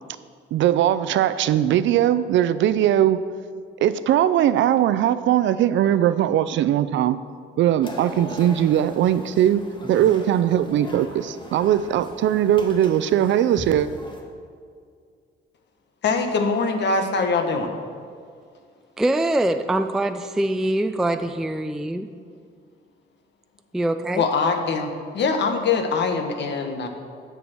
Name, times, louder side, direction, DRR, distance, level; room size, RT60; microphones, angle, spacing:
voice 1, 0.5-3.2 3.8-7.2 7.6-9.6 9.9-13.9, right 11 dB, 70° right, 13 dB, 0.5 m, -20 dB
sound 1, 7.8-14.2, left 1 dB, 25° left, 1.4 m, -39 dB
voice 2, 16.0-17.7 24.1-26.9, left 4 dB, 60° left, 5 dB, 1.1 m, -23 dB
voice 3, 19.0-22.1 23.7-24.2, right 1 dB, ahead, 8 dB, 0.3 m, -23 dB
7.1 x 6.9 x 6.2 m, 2.1 s
cardioid pair, 90°, 20 cm